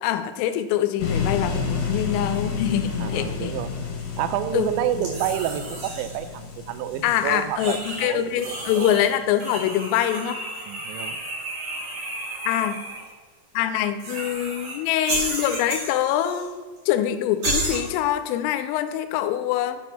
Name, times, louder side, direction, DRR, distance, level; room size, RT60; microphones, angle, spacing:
voice 1, 0.0-3.5 4.5-4.7 7.0-10.4 12.5-12.8 13.5-19.8, left 11 dB, 90° left, 10 dB, 3.2 m, -24 dB
sound 1, 1.0-9.1, left 5 dB, 70° left, 3.3 m, -30 dB
voice 2, 3.0-3.7 4.2-7.8 8.0-8.9 10.7-11.2, right 11 dB, 85° right, 10 dB, 2.6 m, -29 dB
sound 2, 5.0-6.3 6.9-8.1 8.3-9.1 9.4-13.0 14.0-14.8 15.0-16.5 16.8-16.9 17.4-17.8, right 2 dB, 40° right, 3.1 m, -32 dB
7.6 x 6.1 x 5.7 m, 1.4 s
omnidirectional pair, 5.7 m